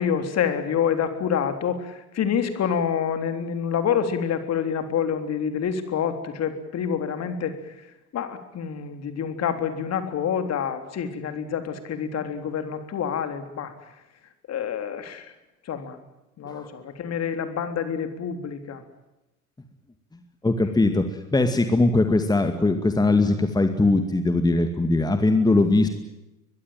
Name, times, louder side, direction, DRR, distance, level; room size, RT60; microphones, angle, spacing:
voice 1, 0.0-7.9 8.1-13.7 14.5-15.3 15.7-16.0 16.4-18.8, left 7 dB, 35° left, 8 dB, 3.7 m, -27 dB
voice 2, 20.4-21.0 21.3-25.9, left 2 dB, 10° left, 7 dB, 2.2 m, -20 dB
22.5 x 22.5 x 9.2 m, 0.98 s
figure-of-eight pair, 75°, 44 cm